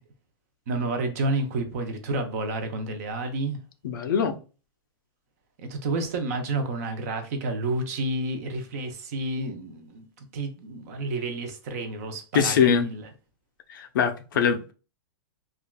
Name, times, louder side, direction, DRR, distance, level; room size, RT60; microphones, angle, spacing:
voice 1, 0.7-3.6 5.6-13.0, right 2 dB, 35° right, 0.5 m, -30 dB
voice 2, 3.8-4.4 12.3-12.9 13.7-14.7, left 7 dB, 50° left, 0.4 m, -22 dB
3.3 x 2.3 x 2.2 m
hypercardioid pair, 170°, 13 cm